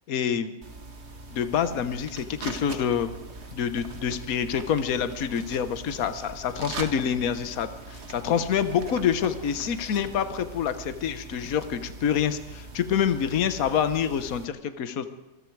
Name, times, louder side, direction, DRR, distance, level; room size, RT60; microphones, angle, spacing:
voice 1, 0.1-0.5 1.3-3.1 3.5-15.1, left 8 dB, 65° left, 11 dB, 1.5 m, -27 dB
sound 1, 0.6-14.5, right 3 dB, 45° right, 1.8 m, -41 dB
26.5 x 21.0 x 4.7 m, 1.0 s
omnidirectional pair, 1.6 m